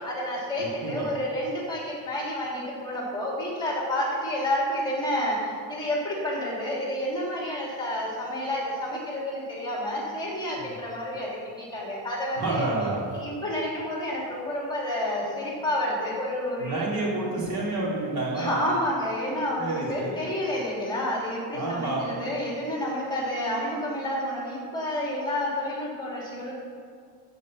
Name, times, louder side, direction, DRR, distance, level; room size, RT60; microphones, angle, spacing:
voice 1, 0.0-12.6 13.1-16.8 18.4-26.5, left 1 dB, 10° left, -4 dB, 3.1 m, -30 dB
voice 2, 0.6-1.1 10.6-10.7 12.3-13.0 16.6-18.6 19.6-20.2 21.5-22.2, right 2 dB, 55° right, -5 dB, 3.3 m, -29 dB
14.5 x 5.3 x 7.7 m, 2.1 s
cardioid pair, 170°, 42 cm